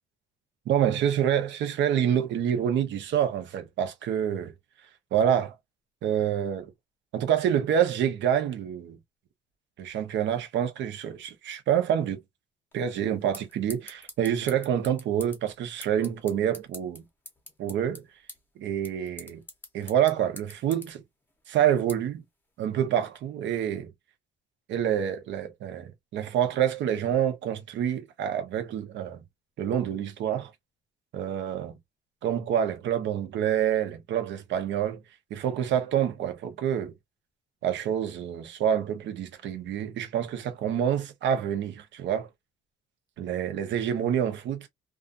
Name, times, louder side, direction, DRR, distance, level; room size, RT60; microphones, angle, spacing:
voice 1, 0.7-4.5 5.1-5.5 6.0-6.7 7.1-9.0 9.8-12.2 12.7-17.0 17.6-18.0 18.6-19.4 19.7-21.0 21.5-22.2 22.6-23.9 24.7-29.2 29.6-30.5 31.1-31.8 32.2-35.0 35.3-36.9 37.6-42.3 43.2-44.7, right 9 dB, 65° right, 0.8 m, -27 dB
sound 1, 12.7-23.2, left 2 dB, 10° left, 0.7 m, -48 dB
2.4 x 2.4 x 2.5 m
cardioid pair, 155°, 20 cm